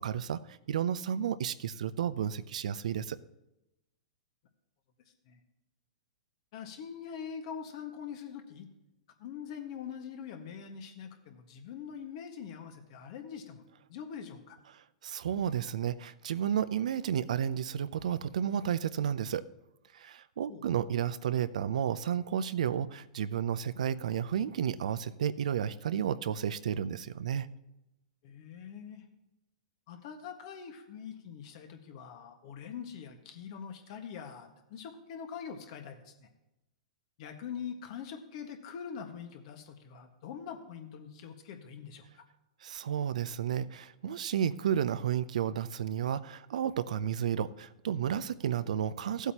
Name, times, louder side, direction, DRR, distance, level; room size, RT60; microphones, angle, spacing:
voice 1, 0.0-3.2 15.0-19.5 19.9-27.5 42.6-49.3, right 9 dB, 75° right, 14 dB, 0.5 m, -32 dB
voice 2, 6.5-8.7 9.2-13.6 13.9-14.6 20.5-20.7 28.2-29.0 29.9-36.3 37.2-42.3, left 7 dB, 55° left, 5 dB, 1.6 m, -43 dB
15.5 x 8.1 x 2.9 m, 0.93 s
hypercardioid pair, 125°, 4 cm